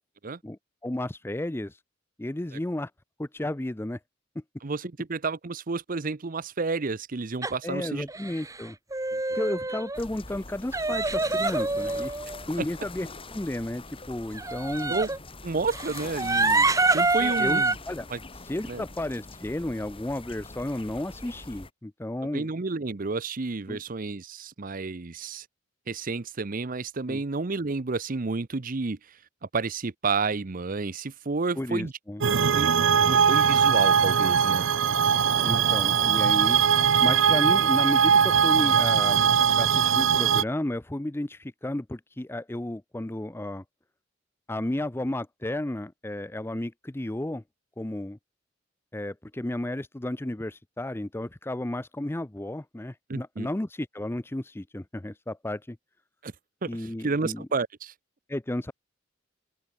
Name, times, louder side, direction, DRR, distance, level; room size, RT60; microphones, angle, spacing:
voice 1, 0.4-1.8 2.2-2.9 3.2-4.0 7.6-8.8 9.3-12.2 12.5-14.9 17.2-18.1 18.4-22.5 23.7-23.8 27.1-27.2 31.6-32.2 35.4-36.6 37.0-39.2 39.6-43.6 44.5-47.4 47.8-48.2 48.9-55.8 56.7-57.5 58.3-58.7, left 1 dB, 10° left, 0.5 m, -33 dB
voice 2, 4.6-8.1 9.1-9.2 14.9-15.1 15.4-17.8 18.1-18.2 18.7-18.8 22.3-25.5 25.9-29.2 29.4-31.9 32.3-32.7 33.0-34.6 35.3-35.8 53.1-53.5 56.2-56.3 56.6-57.9, right 4 dB, 45° right, 0.7 m, -31 dB
sound 1, 7.4-7.5 8.1-8.6 8.9-10.0 10.7-12.4 14.4-15.2 15.7-17.7, right 3 dB, 15° right, 1.6 m, -26 dB
sound 2, 9.9-21.7, left 3 dB, 30° left, 3.7 m, -43 dB
sound 3, 32.2-40.4, right 7 dB, 80° right, 0.7 m, -21 dB
open air
head